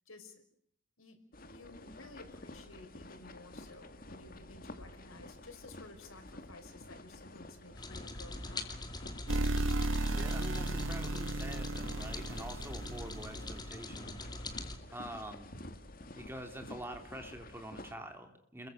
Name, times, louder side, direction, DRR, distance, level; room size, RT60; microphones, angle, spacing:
voice 1, 0.1-0.4 1.0-1.2 1.5-8.7 9.8-10.2 14.9-15.1, left 2 dB, 85° left, 6 dB, 5.7 m, -54 dB
sound 1, 1.3-17.9, left 1 dB, 45° left, 2.2 m, -50 dB
sound 2, 7.8-14.8, left 2 dB, 20° left, 2.6 m, -44 dB
sound 3, 9.3-13.5, right 2 dB, 65° right, 1.3 m, -34 dB
voice 2, 10.1-14.2 14.9-15.5 16.1-18.7, right 1 dB, 10° right, 5 dB, 3.2 m, -46 dB
30.0 x 22.5 x 6.6 m, 0.68 s
head